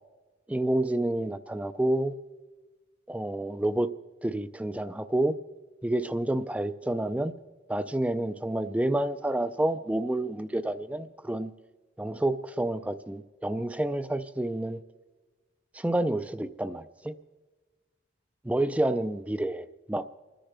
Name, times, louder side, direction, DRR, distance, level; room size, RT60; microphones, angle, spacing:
voice 1, 0.5-2.2 3.1-3.9 4.2-5.4 5.8-7.3 7.7-11.5 12.0-14.8 15.7-17.1 18.4-20.0, right 1 dB, 5° right, 13 dB, 0.3 m, -29 dB
29.0 x 10.0 x 3.4 m, 1.3 s
head